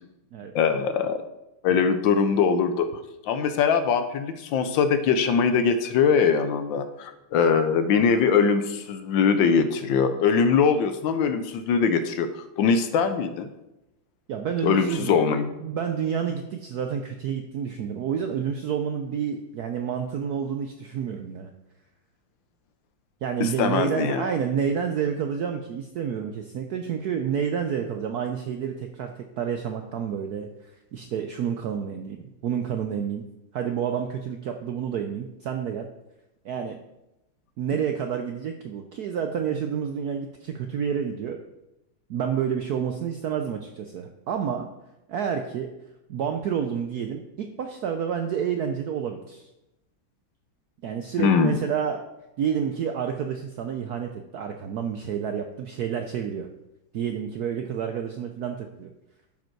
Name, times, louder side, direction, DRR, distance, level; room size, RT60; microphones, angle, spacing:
voice 1, 0.5-1.2 1.6-2.9 3.2-13.5 14.6-15.5 23.4-24.3 51.2-51.6, left 6 dB, 70° left, 9 dB, 1.3 m, -22 dB
voice 2, 14.3-15.3 15.6-21.5 23.2-33.2 33.5-35.9 36.4-36.8 37.6-41.4 42.1-44.7 45.1-45.7 46.1-49.5 50.8-52.1 52.4-56.5 56.9-58.9, right 7 dB, 75° right, 5 dB, 0.9 m, -29 dB
11.0 x 5.2 x 4.5 m, 0.93 s
omnidirectional pair, 2.3 m